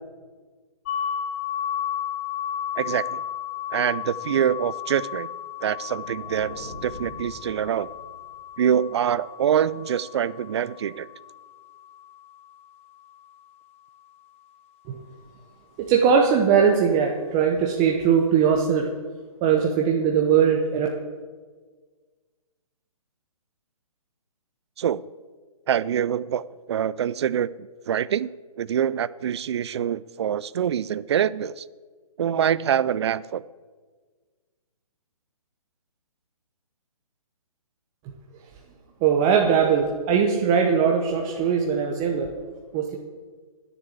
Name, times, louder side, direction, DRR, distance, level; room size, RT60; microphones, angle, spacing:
sound 1, 0.9-12.6, left 9 dB, 20° left, 0.4 m, -34 dB
voice 1, 2.8-3.2 3.7-5.3 5.6-7.9 8.6-11.1 24.8-25.1 25.7-28.3 28.6-31.6 32.2-33.4, right 9 dB, 45° right, 19 dB, 0.4 m, -25 dB
sound 2, 5.6-8.5, equal, 5° left, 2.8 m, -44 dB
voice 2, 15.8-18.9 19.4-20.9 39.0-42.3 42.7-43.0, right 7 dB, 20° right, 1 dB, 0.8 m, -20 dB
10.0 x 6.8 x 8.5 m, 1.5 s
hypercardioid pair, 155°, 19 cm